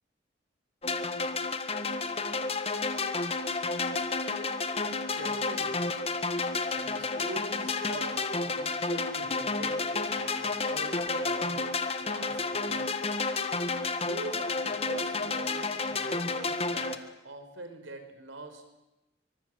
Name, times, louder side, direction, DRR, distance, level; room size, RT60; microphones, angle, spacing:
sound 1, 0.8-17.0, left 3 dB, 30° left, 1.5 m, -31 dB
voice 1, 5.0-6.0 6.7-12.9 14.0-18.6, right 2 dB, 90° right, 7 dB, 4.9 m, -44 dB
25.0 x 24.0 x 7.9 m, 0.98 s
head